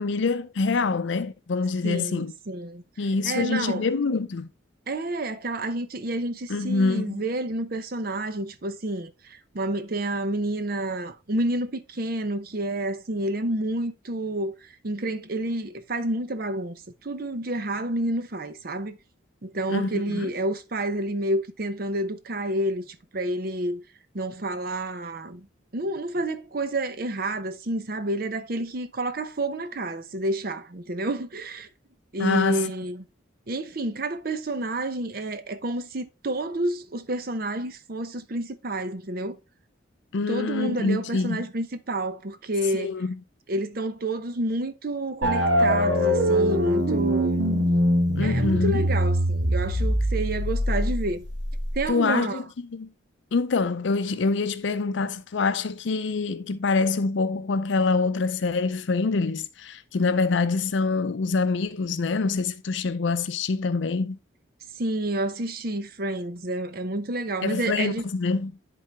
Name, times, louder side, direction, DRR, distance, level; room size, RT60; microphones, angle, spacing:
voice 1, 0.0-2.3 3.0-4.5 6.5-7.2 19.7-20.3 32.2-32.7 40.1-41.5 42.7-43.1 48.2-48.8 51.9-52.4 52.7-52.9 53.3-64.2 67.4-68.5, left 4 dB, 70° left, 0.5 m, -25 dB
voice 2, 1.8-2.8 3.2-3.9 4.9-19.0 19.4-23.8 24.1-25.5 25.7-31.7 32.1-33.0 33.5-39.4 40.3-42.9 43.5-47.5 48.2-51.3 51.7-52.4 64.8-68.0, right 1 dB, 50° right, 0.7 m, -29 dB
sound 1, 45.2-51.9, equal, 75° right, 2.0 m, -23 dB
10.5 x 3.8 x 3.4 m
head